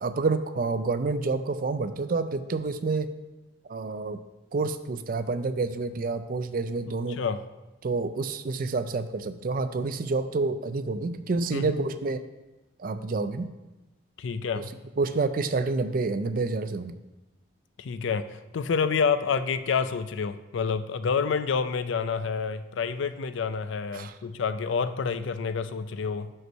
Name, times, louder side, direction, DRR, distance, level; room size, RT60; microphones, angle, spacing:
voice 1, 0.0-3.1 3.7-4.2 4.5-7.2 7.8-12.3 12.8-13.5 14.6-14.7 15.0-17.0 23.9-24.1, right 3 dB, 45° right, 11 dB, 0.4 m, -28 dB
voice 2, 6.8-7.5 11.5-11.8 14.2-14.7 17.8-26.3, left 5 dB, 70° left, 12 dB, 0.4 m, -28 dB
6.1 x 5.5 x 5.4 m, 1.1 s
head